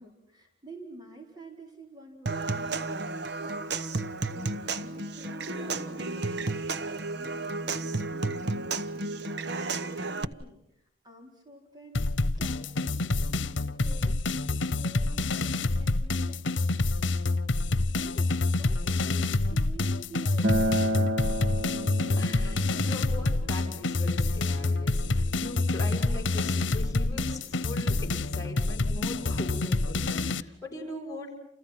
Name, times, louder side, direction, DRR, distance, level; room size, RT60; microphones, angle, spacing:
voice 1, 0.0-2.9 3.3-3.8 4.3-16.5 17.6-21.2, right 1 dB, 20° right, 1 dB, 4.4 m, -50 dB
Human voice / Acoustic guitar / Percussion, 2.3-10.2, right 3 dB, 60° right, 1.1 m, -32 dB
sound 1, 11.9-30.4, left 2 dB, 85° left, 1.0 m, -27 dB
Acoustic guitar, 20.4-25.6, equal, 85° right, 2.3 m, -32 dB
voice 2, 22.1-31.3, left 2 dB, 20° left, 0 dB, 6.9 m, -40 dB
30.0 x 29.5 x 6.0 m, 0.72 s
head